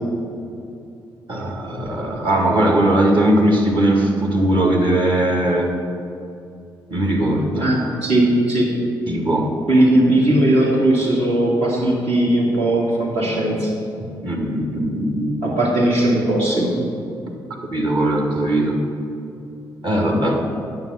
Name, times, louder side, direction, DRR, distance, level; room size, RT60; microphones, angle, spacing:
voice 1, 1.3-5.7 6.9-7.7 9.1-9.5 14.2-15.4 17.7-18.8 19.8-20.4, right 1 dB, 45° right, 1 dB, 2.0 m, -19 dB
voice 2, 7.6-8.7 9.7-13.7 15.4-16.8, right 1 dB, 65° right, -4 dB, 2.3 m, -18 dB
9.8 x 7.0 x 5.7 m, 2.6 s
hypercardioid pair, 45°, 11 cm